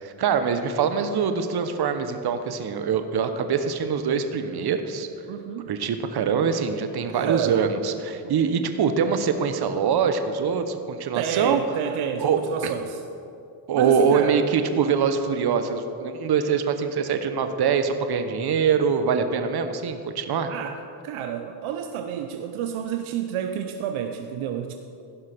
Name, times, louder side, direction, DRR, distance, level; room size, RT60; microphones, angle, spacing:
voice 1, 0.0-5.1 5.7-11.6 12.2-12.7 13.7-20.5, right 6 dB, 50° right, 8 dB, 1.0 m, -24 dB
voice 2, 5.3-5.7 7.1-7.6 8.2-8.3 11.1-13.0 13.7-14.5 20.5-20.8 21.0-24.7, right 9 dB, 70° right, 6 dB, 0.7 m, -30 dB
16.0 x 5.6 x 5.1 m, 2.6 s
supercardioid pair, 80°, 50 cm